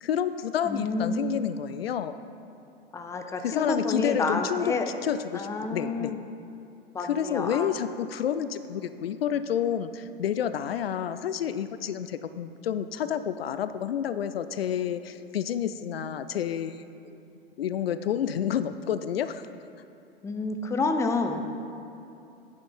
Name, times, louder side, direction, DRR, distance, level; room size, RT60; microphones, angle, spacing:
voice 1, 0.0-2.1 3.4-4.7 5.0-6.2 7.0-16.8 17.6-19.5, left 9 dB, 70° left, 12 dB, 0.5 m, -29 dB
voice 2, 0.6-1.4 2.9-4.9 5.3-6.2 6.9-7.7 20.2-21.5, left 3 dB, 10° left, 6 dB, 0.5 m, -29 dB
9.5 x 7.0 x 4.4 m, 2.8 s
figure-of-eight pair, 85°, 31 cm